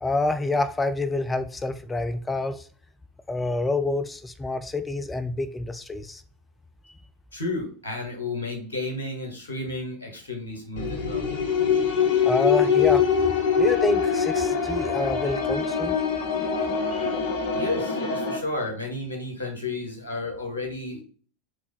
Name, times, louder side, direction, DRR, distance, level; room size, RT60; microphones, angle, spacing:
voice 1, 0.0-2.6 3.3-6.2 11.9-13.1 13.6-16.0 16.9-17.1, left 2 dB, 15° left, 0.5 m, -27 dB
voice 2, 7.3-11.3 17.5-21.0, left 2 dB, 75° left, 1.4 m, -32 dB
sound 1, 10.8-18.4, left 6 dB, 55° left, 0.8 m, -24 dB
3.4 x 3.3 x 4.0 m
figure-of-eight pair, 80°, 0 cm